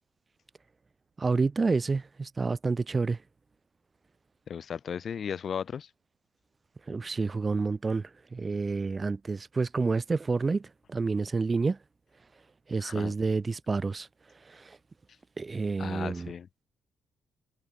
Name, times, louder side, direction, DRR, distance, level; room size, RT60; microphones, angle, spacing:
voice 1, 1.2-3.2 6.9-11.8 12.7-14.1 14.5-14.8 15.4-16.3, right 4 dB, 30° right, 0.5 m, -29 dB
voice 2, 4.5-5.9 12.8-13.1 15.8-16.6, left 7 dB, 50° left, 0.6 m, -36 dB
cardioid pair, 90°, 0 cm